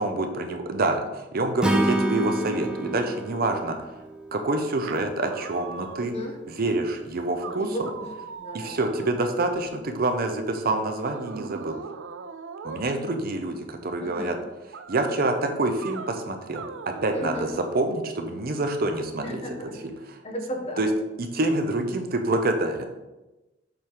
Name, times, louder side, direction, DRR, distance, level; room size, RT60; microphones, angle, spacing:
voice 1, 0.0-3.8 4.3-6.1 6.5-7.7 8.5-11.7 12.6-14.4 14.9-19.4 20.8-20.9 21.2-22.8, right 2 dB, 50° right, 5 dB, 0.7 m, -27 dB
Acoustic guitar / Strum, 1.6-4.9, right 1 dB, 5° right, 0.5 m, -28 dB
sound 1, 4.8-6.3 6.9-7.0 7.4-9.8 11.0-12.9 14.7-15.2 15.8-16.1 16.5-17.5, right 5 dB, 85° right, 0.4 m, -40 dB
voice 2, 5.9-6.3 7.4-8.1 8.4-8.9 14.0-14.4 17.1-17.5 19.2-19.7 20.2-20.8, equal, 35° left, 0 dB, 1.2 m, -35 dB
7.5 x 3.6 x 4.7 m, 1.1 s
head